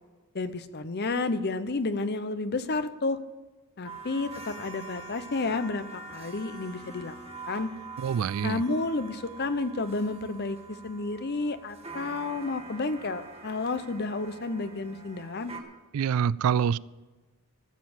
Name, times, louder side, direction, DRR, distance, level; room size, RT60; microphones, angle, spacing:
voice 1, 0.3-3.2 3.8-7.1 7.5-7.7 8.4-15.5, left 3 dB, 45° left, 0.8 m, -31 dB
sound 1, 3.8-15.6, right 3 dB, 25° right, 1.5 m, -44 dB
voice 2, 8.0-8.6 15.9-16.8, right 7 dB, 70° right, 0.3 m, -26 dB
14.5 x 7.5 x 7.9 m
head